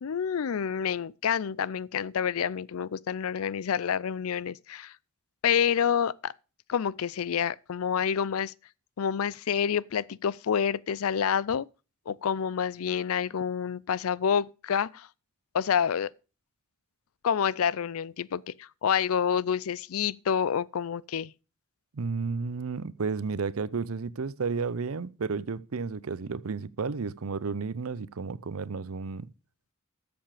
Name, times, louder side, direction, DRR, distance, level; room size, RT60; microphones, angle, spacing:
voice 1, 0.0-4.9 5.4-6.3 6.7-8.5 9.0-11.7 12.1-15.1 15.5-16.1 17.2-21.3, left 7 dB, 75° left, 0.4 m, -28 dB
voice 2, 21.9-29.3, right 4 dB, 75° right, 0.6 m, -32 dB
13.5 x 7.0 x 4.9 m
head